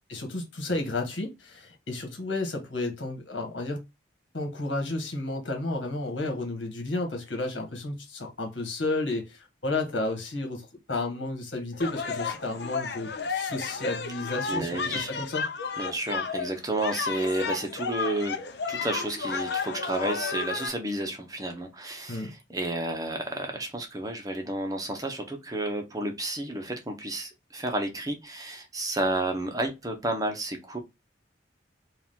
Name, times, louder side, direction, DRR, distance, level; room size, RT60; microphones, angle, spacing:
voice 1, 0.1-3.8 4.3-15.5 22.1-22.3, left 2 dB, 75° left, 1.7 m, -32 dB
sound 1, 11.8-20.7, left 5 dB, 60° left, 0.7 m, -32 dB
voice 2, 14.5-15.1 15.8-18.4 18.7-30.8, right 1 dB, 20° right, 0.8 m, -31 dB
4.7 x 2.5 x 3.6 m
head